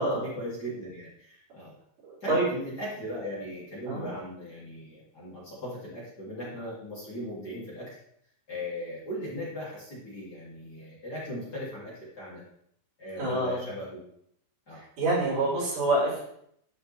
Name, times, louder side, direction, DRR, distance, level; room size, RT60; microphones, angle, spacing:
voice 1, 0.0-1.7 2.2-7.9 8.5-12.4 13.0-14.0 14.7-14.8 15.1-15.6, equal, 30° left, -8 dB, 3.1 m, -38 dB
voice 2, 2.0-2.5 3.9-4.1 13.2-13.6 15.0-16.2, right 2 dB, 80° right, -8 dB, 6.1 m, -26 dB
12.5 x 5.8 x 3.4 m, 0.71 s
omnidirectional pair, 4.2 m